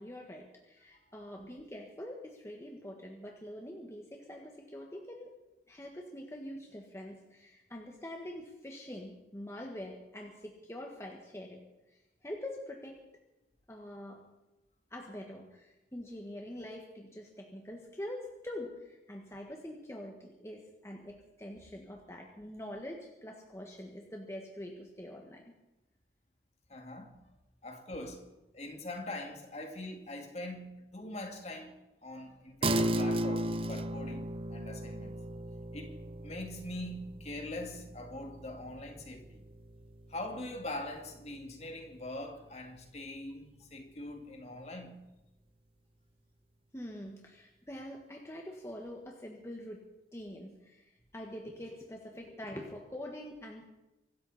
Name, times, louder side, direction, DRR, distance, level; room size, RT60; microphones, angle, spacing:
voice 1, 0.0-5.3 5.7-13.0 13.7-14.2 14.9-25.4 46.7-53.7, left 1 dB, 15° left, 1.5 m, -45 dB
voice 2, 26.7-27.2 27.6-28.3 28.5-35.2 35.7-39.4 40.1-45.1, left 1 dB, 40° left, 2.3 m, -43 dB
sound 1, 32.6-42.4, right 1 dB, 30° right, 0.6 m, -37 dB
25.0 x 13.0 x 4.2 m
head